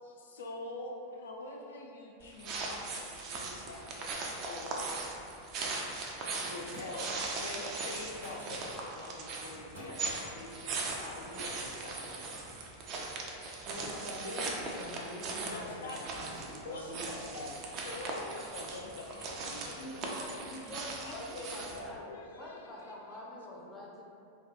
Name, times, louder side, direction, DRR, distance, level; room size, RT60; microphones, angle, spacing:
voice 1, 0.0-4.9 6.5-7.1 7.4-12.5 12.9-14.1 15.5-16.0 16.6-17.5 17.8-20.2 21.0-22.9, left 2 dB, 65° left, -1 dB, 0.3 m, -45 dB
sound 1, 2.2-21.9, right 3 dB, 35° right, 0.3 m, -39 dB
Thump thud, 6.7-7.2 8.2-8.5 9.6-10.0 11.2-11.5 13.7-14.0 14.4-15.0 16.3-16.6 17.7-18.0 18.9-19.4 20.4-20.5, equal, 90° right, 1.2 m, -52 dB
voice 2, 13.7-17.4, equal, 70° right, -6 dB, 0.7 m, -45 dB
voice 3, 19.5-22.0 22.4-24.0, left 1 dB, 15° left, -5 dB, 0.5 m, -46 dB
2.3 x 2.2 x 2.7 m, 2.5 s
figure-of-eight pair, 90°, 0 cm